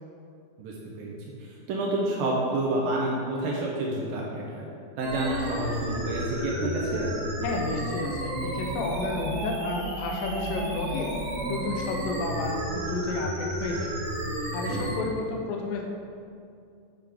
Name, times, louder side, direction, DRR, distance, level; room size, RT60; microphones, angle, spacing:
voice 1, 0.6-1.1 1.4-4.7 5.0-7.1 14.7-14.9, right 2 dB, 75° right, -3 dB, 2.6 m, -29 dB
sound 1, 5.0-15.0, equal, 50° right, 2.1 m, -32 dB
voice 2, 7.4-11.1 11.5-13.9 14.5-15.8, left 3 dB, 75° left, 1 dB, 2.3 m, -32 dB
9.0 x 7.2 x 3.5 m, 2.4 s
omnidirectional pair, 4.3 m